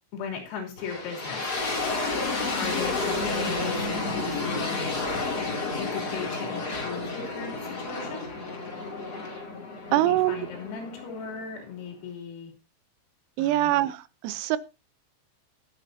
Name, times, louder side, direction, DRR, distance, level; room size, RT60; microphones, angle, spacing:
voice 1, 0.1-1.5 2.6-4.9 5.8-8.3 9.9-12.5 13.4-13.8, left 6 dB, 80° left, 2 dB, 5.8 m, -37 dB
sound 1, 0.8-11.7, left 3 dB, 30° left, 2.0 m, -31 dB
voice 2, 9.9-10.5 13.4-14.6, right 15 dB, 90° right, 16 dB, 3.5 m, -24 dB
21.5 x 8.0 x 2.7 m, 0.29 s
omnidirectional pair, 6.0 m